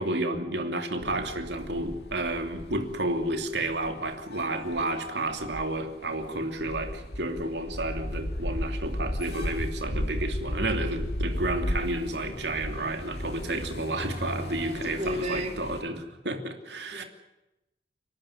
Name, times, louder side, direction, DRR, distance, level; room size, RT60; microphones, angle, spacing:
voice 1, 0.0-17.0, right 2 dB, 80° right, 6 dB, 2.9 m, -31 dB
sound 1, 1.0-15.8, left 1 dB, 70° left, 2.2 m, -35 dB
voice 2, 14.4-15.6 16.9-17.0, equal, 40° right, 4 dB, 2.5 m, -33 dB
29.5 x 13.5 x 9.6 m, 0.93 s
head